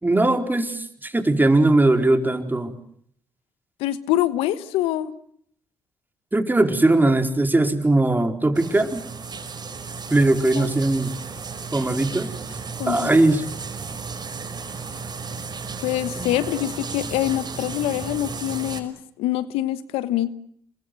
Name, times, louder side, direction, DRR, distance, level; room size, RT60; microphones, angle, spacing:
voice 1, 0.0-2.7 6.3-9.0 10.1-11.1 11.7-12.3 12.9-13.4 16.2-16.3, right 2 dB, 20° right, 7 dB, 4.4 m, -19 dB
voice 2, 3.8-5.1 10.5-10.6 12.8-13.1 15.8-20.3, left 14 dB, 85° left, 15 dB, 1.2 m, -25 dB
sound 1, 8.5-18.8, right 5 dB, 45° right, 5.6 m, -34 dB
27.5 x 22.5 x 7.8 m, 0.66 s
supercardioid pair, 50°, 10 cm